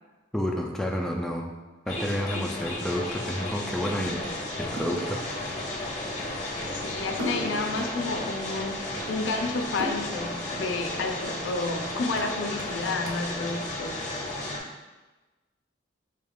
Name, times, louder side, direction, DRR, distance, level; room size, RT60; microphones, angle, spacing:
voice 1, 0.3-1.5 1.9-4.2 4.6-5.6, equal, 5° left, 0 dB, 0.3 m, -30 dB
sound 1, 1.9-14.6, left 1 dB, 40° left, 0.7 m, -34 dB
sound 2, 2.2-14.4, right 2 dB, 85° right, 0.5 m, -43 dB
voice 2, 6.7-8.8 9.1-14.1, left 3 dB, 80° left, 5 dB, 0.4 m, -31 dB
4.4 x 2.4 x 3.5 m, 1.2 s
head